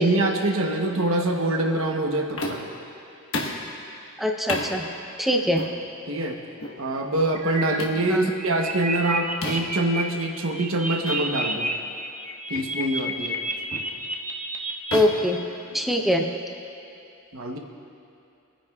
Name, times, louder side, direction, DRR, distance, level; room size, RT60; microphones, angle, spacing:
voice 1, 0.0-2.6 6.1-6.4 6.8-11.7 12.5-13.4 17.3-17.6, right 1 dB, 75° right, 3 dB, 1.1 m, -25 dB
sound 1, 2.4-2.8 3.3-3.7 4.5-4.7 5.6-5.8 6.6-6.8 7.8-8.0 9.4-9.8 11.0-11.2 11.6-11.8 12.5-12.8 13.7-14.0 14.9-16.1, left 2 dB, 70° left, 1.3 m, -32 dB
voice 2, 4.2-4.8 5.2-5.6 8.1-8.3 14.9-15.4 15.7-16.3, left 1 dB, ahead, 2 dB, 0.7 m, -22 dB
sound 2, 7.3-7.8 8.2-10.0 10.3-11.7 12.0-15.0, right 2 dB, 35° right, 0.8 m, -30 dB
28.0 x 9.8 x 2.4 m, 2.6 s
head